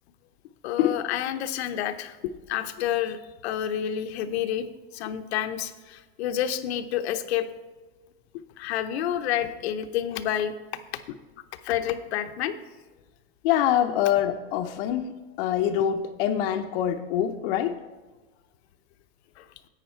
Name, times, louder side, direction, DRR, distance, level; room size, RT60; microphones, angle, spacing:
voice 1, 0.6-2.2 2.5-4.7 4.9-7.5 8.6-10.5 10.9-11.0 11.6-12.6 19.4-19.5, left 10 dB, 90° left, 9 dB, 0.9 m, -29 dB
voice 2, 13.4-17.8, left 10 dB, 60° left, 5 dB, 0.7 m, -25 dB
11.0 x 8.5 x 4.5 m, 1.3 s
supercardioid pair, 160°, 31 cm